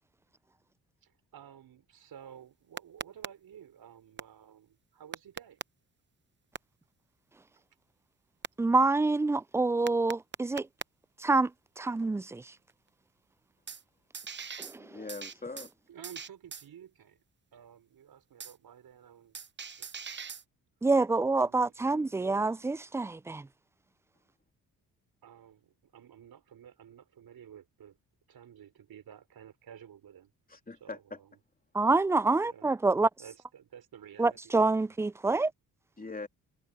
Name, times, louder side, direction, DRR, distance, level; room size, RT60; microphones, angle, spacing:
voice 1, 1.0-5.6 15.9-17.2 17.5-19.4 19.8-20.0 21.4-22.8 25.2-28.0 28.3-30.3 30.8-31.4 32.4-32.7 33.2-34.9 36.0-36.1, right 9 dB, 70° right, 4.8 m, -52 dB
sound 1, 2.8-3.3 4.2-4.3 5.1-5.6 6.6-6.7 8.4-8.5 9.9-10.8 13.7-13.8 14.1-14.8 15.1-15.7 16.0-16.7 18.4-18.5 19.3-20.4, right 6 dB, 30° right, 0.8 m, -39 dB
voice 2, 8.6-10.7 11.2-11.5 11.8-12.4 14.6-14.9 20.8-23.5 31.7-33.1 34.2-35.5, right 3 dB, 10° right, 0.3 m, -27 dB
voice 3, 14.8-15.7 30.5-31.2 36.0-36.3, left 3 dB, 25° left, 3.3 m, -42 dB
supercardioid pair, 55°, 38 cm